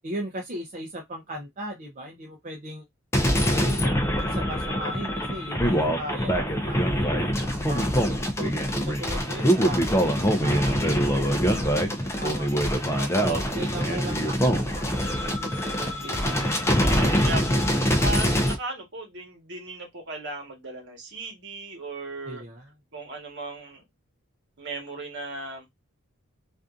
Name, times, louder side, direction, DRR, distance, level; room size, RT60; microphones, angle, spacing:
voice 1, 0.0-2.9 3.4-3.9 4.2-7.1 7.6-12.5 13.0-13.3 13.6-14.4 14.7-16.5 22.2-22.7, equal, 35° right, 0.5 m, -38 dB
sound 1, 3.1-18.6, equal, 15° left, 0.4 m, -24 dB
sound 2, 6.5-8.0 8.4-12.7, left 1 dB, 70° left, 0.8 m, -43 dB
voice 2, 13.2-13.6 17.0-22.4 22.9-23.8 24.6-25.6, right 2 dB, 55° right, 1.2 m, -36 dB
2.5 x 2.4 x 2.3 m
head